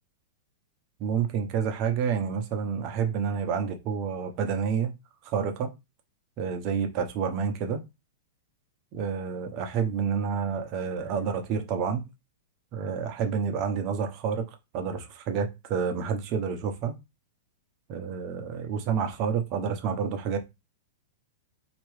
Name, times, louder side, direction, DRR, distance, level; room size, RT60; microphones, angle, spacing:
voice 1, 1.0-4.9 5.2-5.7 6.4-7.8 8.9-12.0 12.7-14.4 14.7-16.9 17.9-20.4, right 6 dB, 35° right, 0.9 m, -29 dB
4.4 x 2.9 x 3.2 m
supercardioid pair, 160°, 0 cm